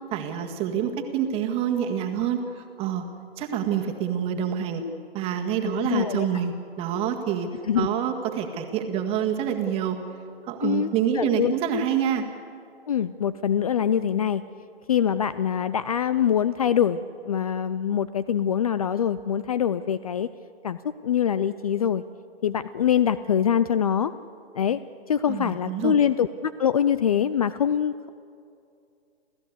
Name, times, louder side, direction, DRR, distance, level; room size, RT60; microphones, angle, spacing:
voice 1, 0.1-3.1 3.4-4.8 5.1-7.5 7.7-10.0 10.5-12.2 25.3-26.0, right 8 dB, 20° right, 5 dB, 1.7 m, -27 dB
voice 2, 5.7-6.3 7.7-7.9 10.6-11.5 12.9-14.4 14.9-20.3 20.6-22.0 22.4-24.1 24.5-24.8 25.1-28.1, left 8 dB, 35° left, 16 dB, 0.5 m, -24 dB
30.0 x 14.0 x 8.2 m, 2.5 s
figure-of-eight pair, 135°, 31 cm